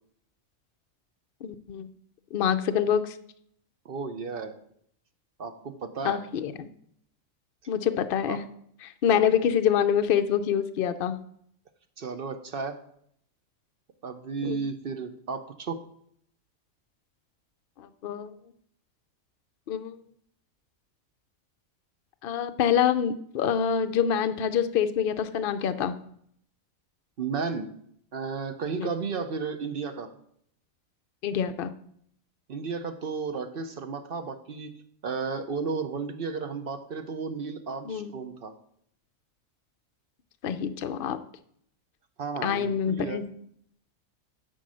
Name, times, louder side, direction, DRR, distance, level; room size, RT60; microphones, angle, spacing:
voice 1, 1.4-1.9 2.3-3.2 6.0-6.7 7.7-8.5 8.8-11.2 14.4-14.6 17.8-18.3 19.7-20.0 22.2-25.9 28.7-28.9 31.2-31.7 37.9-38.1 40.4-41.2 42.4-43.2, left 8 dB, 55° left, 10 dB, 0.7 m, -26 dB
voice 2, 3.8-4.6 5.4-6.3 8.3-8.4 12.0-12.8 14.0-15.8 27.2-27.7 28.1-30.1 32.5-34.7 35.0-38.5 42.2-43.2, right 5 dB, 50° right, 8 dB, 0.8 m, -33 dB
10.0 x 3.9 x 6.2 m, 0.67 s
omnidirectional pair, 1.4 m